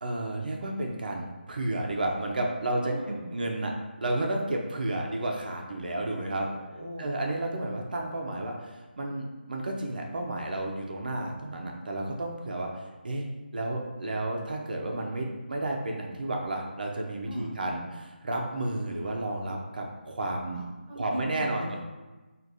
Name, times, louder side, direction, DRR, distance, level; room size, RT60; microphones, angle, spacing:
voice 1, 0.0-2.9 3.3-3.7 4.0-6.5 7.0-13.3 13.5-17.8 18.2-20.6 21.0-21.8, right 1 dB, 55° right, 0 dB, 0.6 m, -32 dB
voice 2, 2.9-3.3 6.3-7.1 17.2-18.0 20.5-21.0 21.3-21.8, equal, 5° left, -16 dB, 1.2 m, -40 dB
4.6 x 2.5 x 2.6 m, 1.2 s
figure-of-eight pair, 155°, 6 cm